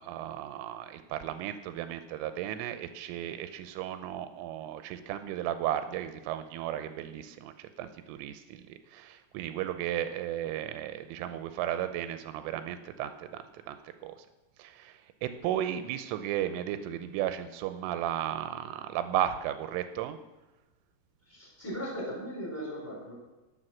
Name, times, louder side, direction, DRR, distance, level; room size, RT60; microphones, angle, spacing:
voice 1, 0.0-14.1 14.6-20.2, right 11 dB, 85° right, 10 dB, 3.2 m, -35 dB
voice 2, 21.3-23.1, equal, 5° left, -3 dB, 3.8 m, -38 dB
12.0 x 10.5 x 6.2 m, 1.1 s
omnidirectional pair, 5.6 m